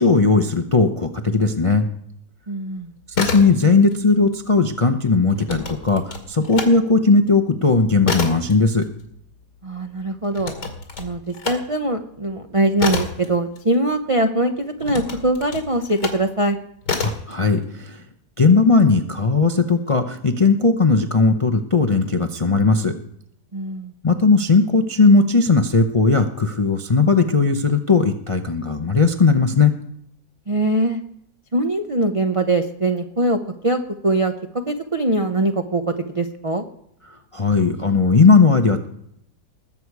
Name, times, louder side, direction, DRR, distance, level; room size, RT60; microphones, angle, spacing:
voice 1, 0.0-1.9 3.2-8.9 17.0-18.0 18.4-22.9 24.0-29.7 37.3-38.9, left 4 dB, 50° left, 5 dB, 0.4 m, -17 dB
voice 2, 2.5-2.9 9.6-10.5 11.0-16.6 23.5-23.9 30.5-31.0 31.5-33.4 33.6-36.6, right 2 dB, 50° right, 5 dB, 0.3 m, -22 dB
sound 1, 3.0-4.0 4.3-6.7 7.1-14.2 14.8-16.3 16.8-17.3, left 4 dB, 75° left, 2.9 m, -29 dB
21.0 x 8.1 x 4.8 m, 0.74 s
omnidirectional pair, 1.9 m